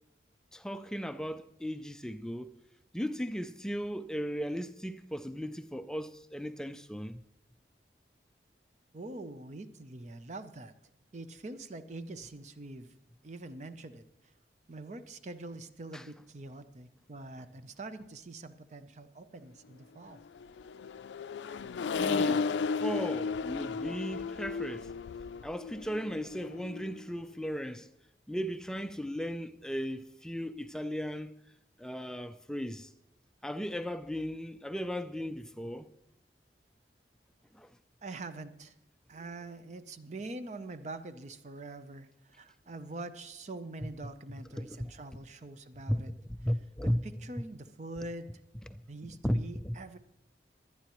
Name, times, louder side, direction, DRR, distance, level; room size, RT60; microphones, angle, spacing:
voice 1, 0.5-2.5 2.9-7.2 15.9-16.1 21.9-22.4 22.8-24.9 25.4-27.9 28.3-31.4 31.8-32.9 33.4-35.9 37.5-37.8 43.8-43.9 44.6-44.9 45.9-46.0 46.4-47.1 48.7-49.8, equal, 5° left, 0.3 m, -36 dB
voice 2, 8.9-10.7 11.1-12.9 13.2-14.0 14.7-20.2 38.0-38.7 39.1-46.1 46.8-48.3 48.9-50.0, right 2 dB, 40° right, 0.6 m, -44 dB
Accelerating revving vroom, 20.4-27.0, left 5 dB, 85° left, 0.3 m, -34 dB
23.0 x 9.5 x 3.0 m
head